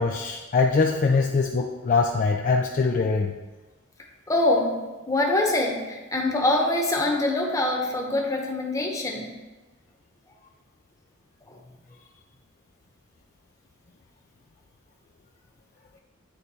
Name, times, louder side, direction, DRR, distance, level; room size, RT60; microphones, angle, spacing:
voice 1, 0.0-3.3, left 4 dB, 40° left, 2 dB, 0.4 m, -23 dB
voice 2, 4.3-4.8 5.1-9.3 11.5-11.6, left 2 dB, 15° left, 0 dB, 0.9 m, -24 dB
9.2 x 3.5 x 4.1 m, 1.2 s
head